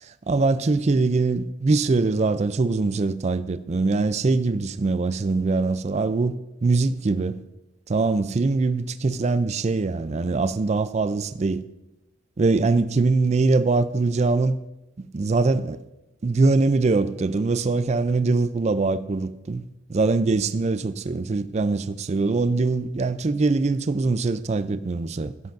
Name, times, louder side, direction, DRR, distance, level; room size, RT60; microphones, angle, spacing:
voice 1, 0.3-6.3 6.6-7.4 7.9-11.6 12.4-14.6 15.0-15.8 16.2-19.6 19.9-25.3, right 3 dB, 30° right, 0.3 m, -22 dB
15.5 x 7.8 x 2.6 m
head